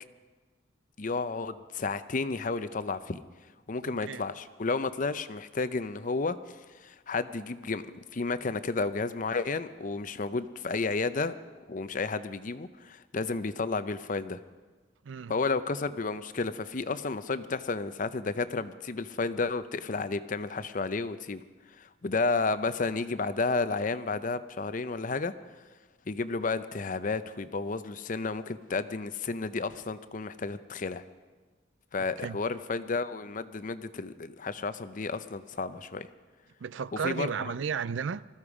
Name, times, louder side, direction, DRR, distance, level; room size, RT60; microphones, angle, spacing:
voice 1, 1.0-3.2 3.7-6.6 6.8-11.4 11.7-14.4 15.3-21.4 21.8-25.3 26.1-31.0 31.9-36.1 37.0-37.5, left 3 dB, 45° left, 0.6 m, -32 dB
voice 2, 3.8-4.2 15.0-15.3 32.0-32.4 36.6-38.3, right 6 dB, 80° right, 0.4 m, -34 dB
20.0 x 14.0 x 4.9 m
head